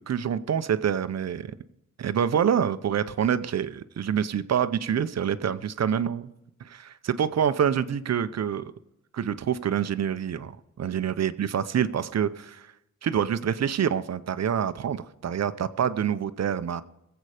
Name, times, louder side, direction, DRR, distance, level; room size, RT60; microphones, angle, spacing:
voice 1, 0.0-1.5 2.0-6.3 6.6-8.7 9.1-12.7 13.0-16.8, right 8 dB, 60° right, 12 dB, 0.8 m, -26 dB
21.0 x 8.1 x 5.0 m, 0.85 s
wide cardioid pair, 125°, 30 cm